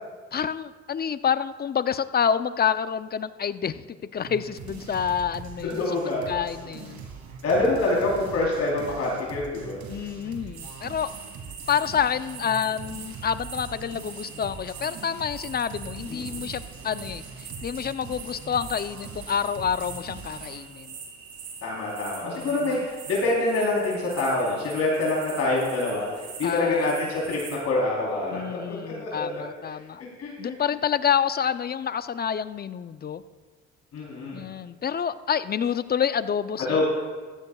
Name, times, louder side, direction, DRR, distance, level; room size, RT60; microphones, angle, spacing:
voice 1, 0.3-5.9 6.3-7.1 9.9-11.1 11.7-21.0 22.2-22.9 26.4-27.1 28.3-30.0 30.4-33.2 34.3-36.8, left 8 dB, 35° left, 13 dB, 0.5 m, -28 dB
sound 1, 4.2-20.7, right 5 dB, 70° right, 2.1 m, -42 dB
voice 2, 5.8-6.3 7.4-9.8 16.1-16.2 21.6-29.3 30.0-30.5 33.9-34.5 36.7-36.8, left 2 dB, 60° left, -4 dB, 3.7 m, -26 dB
sound 2, 10.5-27.6, right 5 dB, 85° right, 3.1 m, -43 dB
14.5 x 14.5 x 2.4 m, 1.5 s
supercardioid pair, 70°, 29 cm